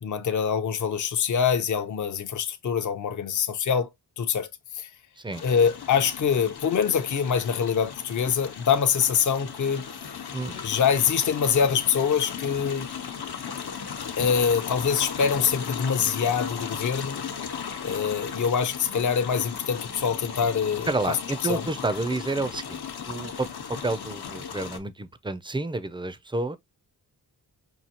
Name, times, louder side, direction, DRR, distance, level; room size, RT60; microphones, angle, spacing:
voice 1, 0.0-3.9 4.2-4.5 4.7-4.9 5.4-9.9 10.6-12.9 14.2-17.2 17.8-20.9 21.5-21.6, left 7 dB, 50° left, 0.7 m, -24 dB
water in channel, 5.3-24.8, left 7 dB, 70° left, 1.0 m, -36 dB
voice 2, 20.9-26.6, right 2 dB, 15° right, 0.4 m, -30 dB
5.6 x 2.7 x 2.9 m
wide cardioid pair, 135°, 39 cm